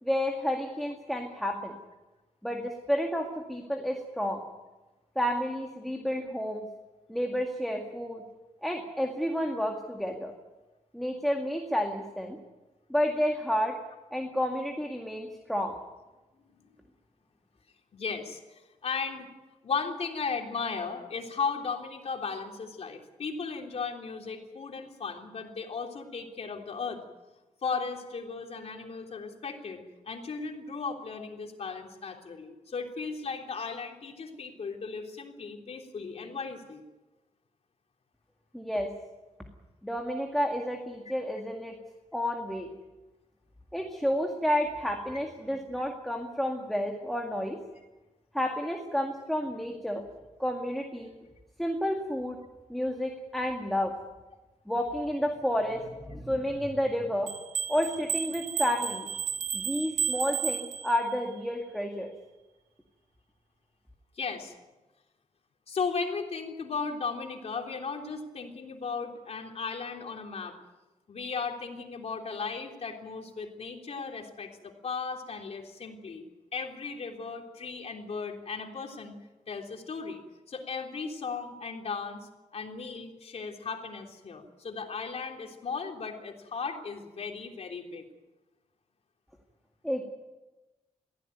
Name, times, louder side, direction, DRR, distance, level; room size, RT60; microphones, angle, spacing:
voice 1, 0.0-1.7 2.4-4.4 5.2-6.6 7.1-8.2 8.6-10.3 10.9-12.4 12.9-13.8 14.1-15.8 38.5-38.9 39.8-41.7 42.1-42.7 43.7-47.6 48.3-50.0 50.4-51.1 51.6-52.4 52.7-53.9 54.7-57.3 57.7-59.1 59.5-62.1 89.8-90.0, equal, ahead, 2 dB, 2.1 m, -30 dB
voice 2, 17.9-19.3 19.6-27.0 27.6-36.8 64.1-64.5 65.7-70.5 71.1-76.2 76.5-79.1 79.5-80.2 80.5-88.1, left 5 dB, 55° left, 3 dB, 3.3 m, -36 dB
sound 1, 57.3-61.2, right 7 dB, 90° right, 2.2 m, -33 dB
23.0 x 16.0 x 9.3 m, 1.1 s
wide cardioid pair, 145°, 13 cm